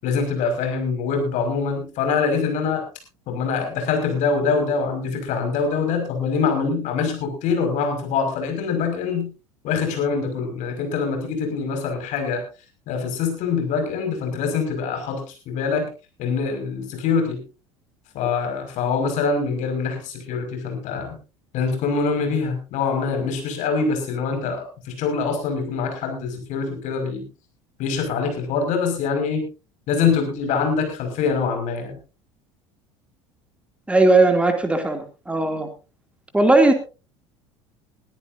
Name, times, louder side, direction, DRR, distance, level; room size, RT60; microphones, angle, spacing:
voice 1, 0.0-2.8 3.3-9.3 9.6-12.4 12.9-15.9 16.2-17.4 18.1-21.2 21.5-27.3 27.8-29.4 29.9-32.0, left 5 dB, 50° left, 4 dB, 5.7 m, -24 dB
voice 2, 33.9-35.7 36.3-36.7, right 2 dB, 5° right, 5 dB, 2.7 m, -17 dB
22.0 x 13.5 x 2.7 m, 0.32 s
figure-of-eight pair, 70°, 16 cm